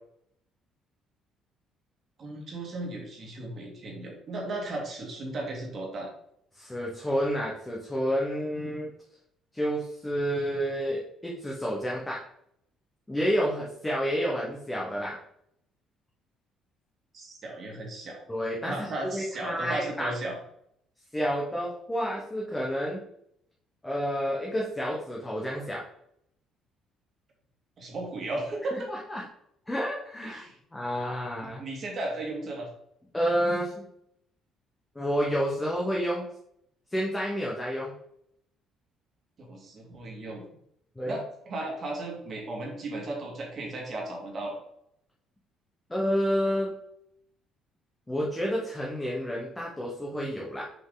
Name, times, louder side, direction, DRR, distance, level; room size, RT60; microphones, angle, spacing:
voice 1, 2.2-6.1 17.1-18.2 18.6-20.4 27.8-28.8 30.2-30.6 31.6-32.7 39.4-40.4 41.0-44.6, right 2 dB, 35° right, 0 dB, 2.1 m, -35 dB
voice 2, 6.5-8.9 9.5-12.2 13.1-15.2 18.3-20.1 21.1-23.0 23.8-25.8 28.7-29.2 29.7-30.4 30.7-31.6 33.1-33.9 34.9-36.3 36.9-37.9 41.0-41.2 45.9-46.7 48.1-50.6, equal, 10° left, -3 dB, 1.0 m, -29 dB
6.5 x 5.2 x 3.9 m, 0.73 s
cardioid pair, 165°, 0 cm